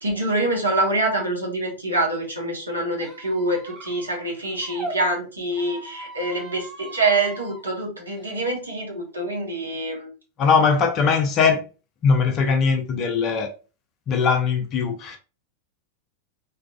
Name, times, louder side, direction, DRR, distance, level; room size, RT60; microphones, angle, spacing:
voice 1, 0.0-10.1, right 2 dB, 80° right, 1.0 m, -25 dB
Squeak, 3.0-4.9 5.5-7.6, right 2 dB, 15° right, 0.8 m, -39 dB
voice 2, 10.4-11.6 12.0-13.5 14.1-15.2, left 5 dB, 35° left, 0.6 m, -20 dB
3.5 x 2.3 x 2.3 m
figure-of-eight pair, 90°, 0 cm